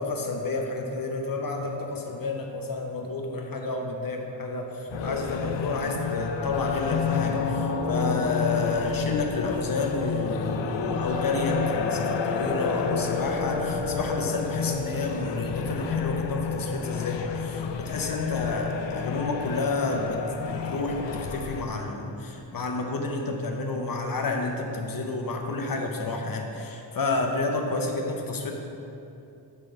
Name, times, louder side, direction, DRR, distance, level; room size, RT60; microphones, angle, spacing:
voice 1, 0.0-28.5, left 3 dB, 50° left, 2 dB, 0.8 m, -30 dB
sound 1, 4.9-21.6, left 6 dB, 80° left, 0.5 m, -30 dB
7.7 x 3.4 x 5.8 m, 2.8 s
wide cardioid pair, 105°, 43 cm